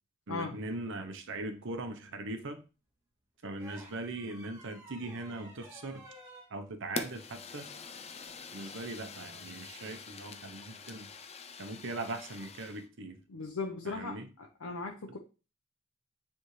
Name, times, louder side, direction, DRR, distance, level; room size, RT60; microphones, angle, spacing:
voice 1, 0.3-2.6 3.4-6.0 6.5-7.7 8.5-11.1 11.6-13.2 13.8-14.3, right 2 dB, 65° right, 7 dB, 0.9 m, -40 dB
sound 1, 3.6-6.5 8.2-8.4, right 1 dB, 15° right, 2.7 m, -53 dB
Fire, 7.0-12.9, left 4 dB, 30° left, 0.6 m, -45 dB
voice 2, 13.3-15.2, left 4 dB, 90° left, 2 dB, 0.8 m, -38 dB
9.3 x 3.5 x 3.2 m, 0.33 s
head